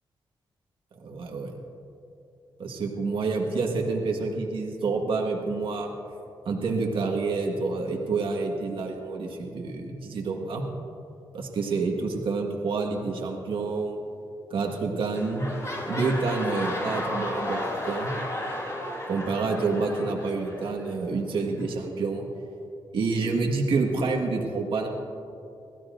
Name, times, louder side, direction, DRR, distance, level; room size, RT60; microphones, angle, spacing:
voice 1, 1.0-1.5 2.6-5.9 6.4-10.6 11.3-14.0 14.5-15.5 15.8-18.1 19.1-22.3 22.9-24.9, right 4 dB, 75° right, 1 dB, 1.6 m, -28 dB
sound 1, 14.6-14.8 15.1-20.9 21.6-21.7, left 1 dB, 35° left, 3.5 m, -33 dB
23.0 x 15.5 x 2.6 m, 2.7 s
cardioid pair, 80°, 9 cm